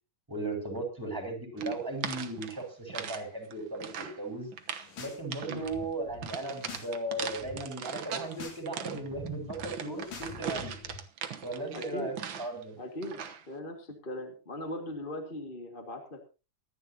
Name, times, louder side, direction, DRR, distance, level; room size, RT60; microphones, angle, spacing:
voice 1, 0.3-4.5 5.0-10.8 11.4-12.8, right 2 dB, 5° right, 3 dB, 5.5 m, -36 dB
sound 1, 1.6-3.2 3.5-4.2 4.5-4.9 5.3-5.7 6.2-8.3 8.7-12.6 13.0-13.4, right 8 dB, 65° right, 1.2 m, -39 dB
sound 2, 4.7-5.2 5.5-6.9 7.2-7.6 8.1-8.6 8.9-11.0, left 4 dB, 80° left, 4.8 m, -46 dB
voice 2, 11.7-12.1 12.8-13.2 13.5-16.3, left 1 dB, 20° left, 4 dB, 1.6 m, -39 dB
24.5 x 11.0 x 2.9 m, 0.31 s
omnidirectional pair, 3.7 m